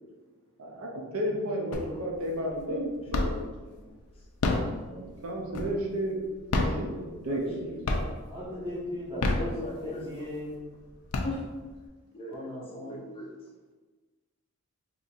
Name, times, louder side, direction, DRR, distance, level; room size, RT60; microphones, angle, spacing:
voice 1, 0.6-3.4 4.9-6.2 6.5-7.8, equal, 65° right, -2 dB, 0.7 m, -32 dB
sound 1, 1.7-2.2 2.6-3.6 4.2-6.0 6.4-7.6 7.9-8.4 9.0-10.1 10.6-10.7 10.9-11.8, left 2 dB, 85° left, 0.5 m, -29 dB
voice 2, 7.3-7.8 8.5-8.7 9.6-10.0 11.2-11.4 12.1-13.3, left 1 dB, 25° left, -2 dB, 0.4 m, -40 dB
voice 3, 8.2-10.7 12.3-13.0, left 1 dB, 25° right, -8 dB, 1.2 m, -37 dB
4.0 x 2.9 x 2.5 m, 1.3 s
head